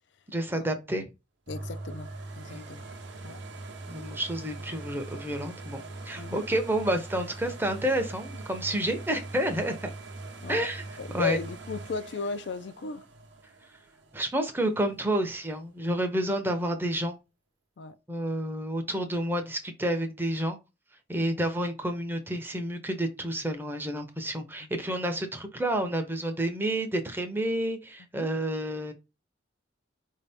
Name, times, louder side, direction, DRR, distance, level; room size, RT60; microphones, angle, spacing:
voice 1, 0.3-1.0 2.5-2.7 3.9-5.8 6.1-9.9 10.5-10.8 11.1-11.4 14.1-17.2 18.1-20.6 21.1-28.9, right 1 dB, 10° right, 0.6 m, -29 dB
voice 2, 1.5-2.8 3.2-3.4 6.2-6.4 10.4-10.7 11.0-13.0 17.8-18.0 21.2-21.4 28.2-28.3, left 4 dB, 60° left, 0.4 m, -35 dB
sound 1, 1.5-15.1 15.7-15.8, right 2 dB, 60° right, 0.8 m, -42 dB
4.7 x 2.7 x 3.4 m
head